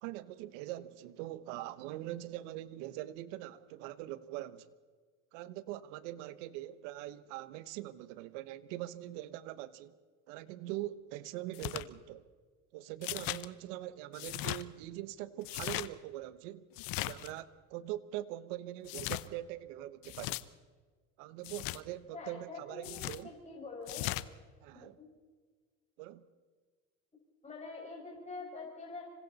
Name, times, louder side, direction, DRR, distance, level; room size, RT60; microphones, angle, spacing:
voice 1, 0.0-4.7 5.3-10.0 10.3-12.2 12.7-16.7 17.0-20.4 21.2-23.3 24.6-25.0 26.0-26.2, right 14 dB, 90° right, 1.1 m, -42 dB
sound 1, 11.5-11.9 13.0-13.5 14.1-14.6 15.4-15.9 16.8-17.3 18.9-19.3 20.0-20.4 21.4-21.8 22.8-23.2 23.9-24.3, left 18 dB, 70° left, 0.9 m, -38 dB
voice 2, 22.1-24.1 24.7-25.1 27.4-29.1, left 3 dB, 20° left, 5.7 m, -45 dB
26.5 x 25.0 x 4.1 m
supercardioid pair, 100°, 36 cm